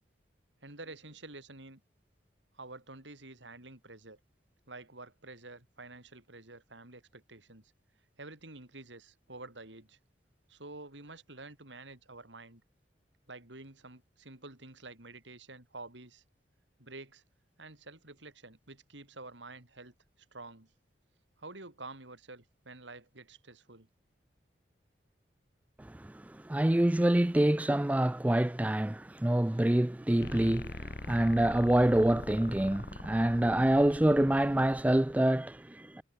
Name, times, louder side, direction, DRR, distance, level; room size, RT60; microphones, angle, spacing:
voice 1, 0.6-1.8 2.5-4.2 4.7-7.7 8.2-10.0 10.5-12.6 13.3-16.2 16.8-17.2 17.6-19.9 20.3-20.7 21.4-23.9, right 2 dB, 85° right, 4.9 m, -49 dB
voice 2, 25.8-36.0, right 1 dB, 10° right, 0.3 m, -26 dB
sound 1, 30.2-35.2, left 2 dB, 55° left, 1.4 m, -43 dB
head